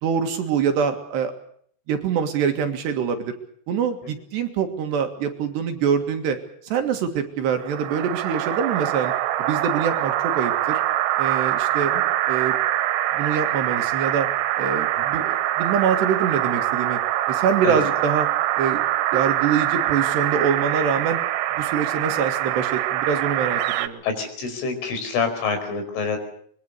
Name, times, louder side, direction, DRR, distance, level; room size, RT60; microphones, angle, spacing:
voice 1, 0.0-1.3 1.9-3.3 3.7-6.4 6.6-9.1 9.4-10.8 11.2-11.9 12.3-12.5 13.1-14.3 14.6-17.0 17.3-18.3 18.6-18.8 19.1-21.2 21.6-24.0, right 7 dB, 65° right, 6 dB, 3.7 m, -24 dB
sound 1, 7.6-23.9, right 13 dB, 85° right, 3.9 m, -24 dB
voice 2, 24.0-26.2, left 5 dB, 70° left, 7 dB, 7.3 m, -27 dB
25.5 x 23.0 x 6.7 m, 0.62 s
omnidirectional pair, 5.8 m